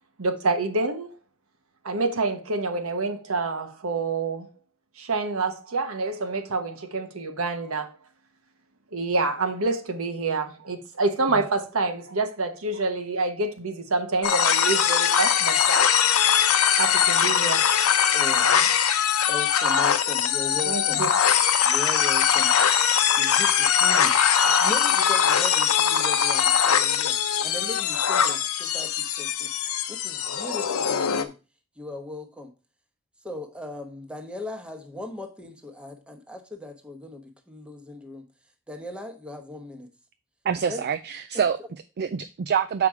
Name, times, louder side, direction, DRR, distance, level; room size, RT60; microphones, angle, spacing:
voice 1, 0.2-1.1 1.8-4.5 5.0-8.0 8.9-15.9 16.7-17.6 18.4-18.6 20.6-21.1, right 3 dB, 70° right, 1.2 m, -27 dB
sound 1, 14.2-31.2, left 8 dB, 75° left, 0.7 m, -21 dB
voice 2, 18.1-18.5 19.3-21.0 21.6-22.5 23.2-29.5 29.9-31.3 31.8-32.5 33.2-38.3 38.7-39.9 40.7-40.8 41.3-41.4, left 2 dB, 5° right, 1.0 m, -38 dB
voice 3, 40.4-42.9, right 7 dB, 50° right, 0.4 m, -26 dB
6.9 x 5.0 x 4.7 m
head